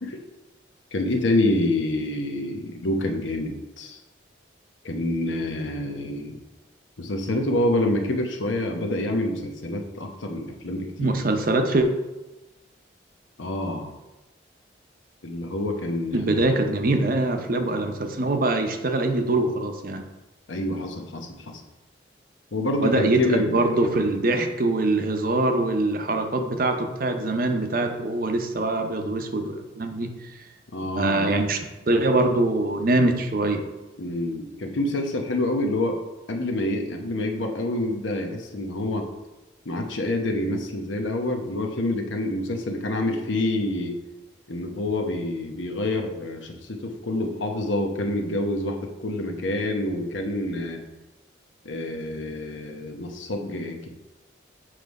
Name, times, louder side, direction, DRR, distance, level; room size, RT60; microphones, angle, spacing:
voice 1, 0.9-4.0 4.8-6.4 7.0-11.1 13.4-13.9 15.2-16.7 20.5-21.6 22.5-23.9 30.7-31.4 34.0-36.0 36.3-39.1 39.6-44.0 44.5-48.8 49.0-50.8 51.6-53.9, left 1 dB, 80° left, 3 dB, 0.9 m, -27 dB
voice 2, 11.0-11.9 16.1-20.0 22.8-30.1 30.9-31.6 31.9-33.6, right 2 dB, 50° right, 6 dB, 0.6 m, -23 dB
7.5 x 3.3 x 5.2 m, 1.0 s
head